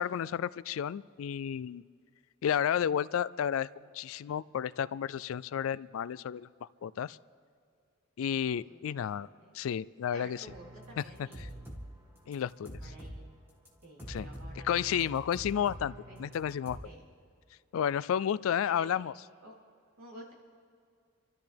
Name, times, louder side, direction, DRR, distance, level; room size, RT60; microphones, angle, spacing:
voice 1, 0.0-1.8 2.4-7.2 8.2-9.3 9.5-10.5 11.0-11.5 12.3-12.9 14.1-14.3 14.6-16.8 17.7-19.1, left 9 dB, 75° left, 19 dB, 0.3 m, -32 dB
voice 2, 8.2-9.6 10.1-11.6 12.7-13.3 13.8-15.1 16.1-16.2 16.8-17.0 18.6-18.9 19.4-19.5 20.0-20.3, right 1 dB, 90° right, -5 dB, 3.7 m, -52 dB
sound 1, 10.5-11.9 12.2-13.2 13.7-13.8 14.0-16.8, equal, 10° right, 1.9 m, -45 dB
29.0 x 13.5 x 3.5 m, 2.2 s
head